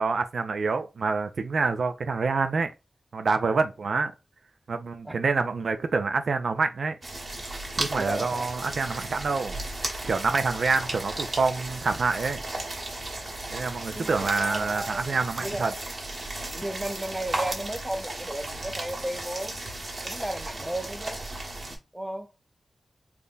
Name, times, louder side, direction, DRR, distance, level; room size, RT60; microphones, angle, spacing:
voice 1, 0.0-2.7 3.1-4.1 4.7-6.9 7.8-9.6 10.0-12.4 13.5-15.7, right 4 dB, 70° right, 0.4 m, -27 dB
sound 1, 7.0-21.8, right 2 dB, 40° right, 1.2 m, -35 dB
voice 2, 7.9-8.6 13.9-15.7 16.5-19.5 20.0-21.3 21.9-22.3, right 1 dB, 10° right, 0.5 m, -34 dB
3.5 x 2.2 x 3.8 m
wide cardioid pair, 100°, 0 cm